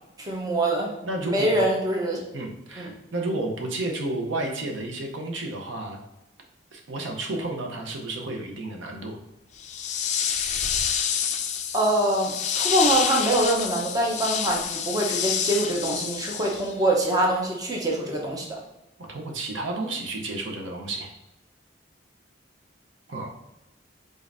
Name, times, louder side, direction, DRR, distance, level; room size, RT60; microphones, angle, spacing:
voice 1, 0.2-0.9 1.2-2.2 2.8-2.9 11.7-18.6, right 1 dB, 20° right, -1 dB, 0.8 m, -24 dB
voice 2, 1.0-1.6 2.3-6.0 6.7-9.2 19.1-21.1 23.1-23.3, right 2 dB, 80° right, 2 dB, 0.8 m, -31 dB
sound 1, 9.6-16.8, left 7 dB, 35° left, 0.4 m, -28 dB
5.1 x 3.8 x 2.6 m, 0.94 s
head